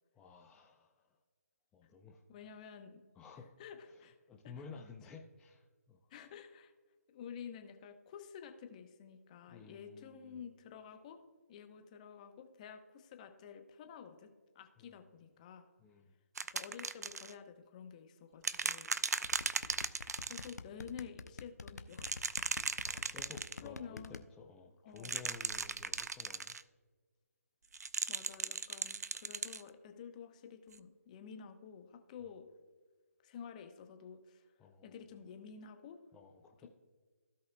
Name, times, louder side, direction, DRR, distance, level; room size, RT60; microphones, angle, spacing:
voice 1, 0.1-1.1 1.7-2.2 3.2-3.5 3.9-6.0 9.4-10.4 14.8-15.0 15.8-16.0 22.9-26.5 34.6-35.0 36.1-36.7, left 5 dB, 10° left, -1 dB, 0.5 m, -54 dB
voice 2, 2.3-3.0 3.6-4.2 4.4-4.5 6.1-6.7 7.1-11.2 11.5-14.3 14.5-15.7 16.5-18.9 19.8-19.9 20.3-22.3 23.6-24.2 24.8-25.2 28.1-32.5 33.2-34.5 34.8-36.0, left 7 dB, 25° left, 7 dB, 0.9 m, -51 dB
sound 1, 16.4-17.3 18.4-20.5 21.9-23.6 25.0-26.6 27.7-29.6 30.7-30.8, right 4 dB, 80° right, 0.5 m, -37 dB
sound 2, 19.2-24.2, left 4 dB, 85° left, 0.8 m, -46 dB
16.0 x 5.4 x 2.3 m, 1.5 s
hypercardioid pair, 155°, 9 cm